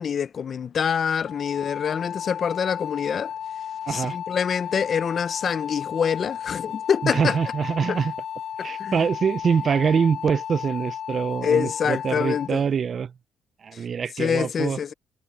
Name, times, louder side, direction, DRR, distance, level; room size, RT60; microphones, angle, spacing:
voice 1, 0.0-3.3 3.9-7.4 7.9-8.0 8.6-9.0 11.4-12.6 14.2-14.9, left 7 dB, 50° left, 0.7 m, -25 dB
sound 1, 1.3-12.5, left 9 dB, 70° left, 2.2 m, -34 dB
voice 2, 3.9-4.2 7.0-8.1 8.6-13.1 13.6-14.8, right 6 dB, 50° right, 0.4 m, -24 dB
cardioid pair, 90°, 0 cm